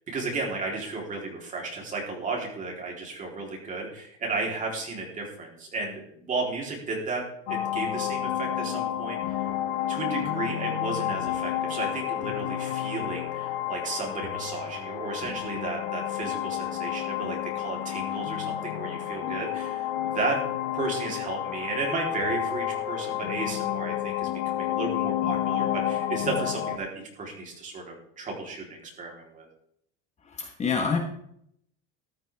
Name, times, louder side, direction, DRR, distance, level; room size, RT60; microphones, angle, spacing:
voice 1, 0.1-9.5 9.9-20.4 20.7-29.5, right 3 dB, 25° right, -1 dB, 3.7 m, -33 dB
sound 1, 7.5-26.8, left 12 dB, 80° left, 1.7 m, -30 dB
voice 2, 30.2-31.0, left 5 dB, 20° left, 3 dB, 1.4 m, -27 dB
14.0 x 12.5 x 3.6 m, 0.71 s
cardioid pair, 155°, 32 cm